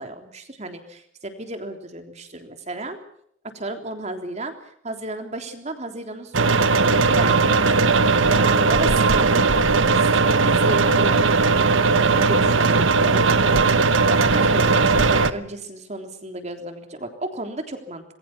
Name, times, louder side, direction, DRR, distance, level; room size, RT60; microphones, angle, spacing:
voice 1, 0.0-3.0 3.5-4.5 4.8-7.4 7.7-9.6 9.9-11.6 12.2-13.2 14.1-18.0, right 1 dB, 35° right, 6 dB, 3.5 m, -33 dB
sound 1, 6.3-15.3, right 4 dB, 80° right, 1.1 m, -18 dB
27.0 x 21.5 x 5.8 m, 0.68 s
head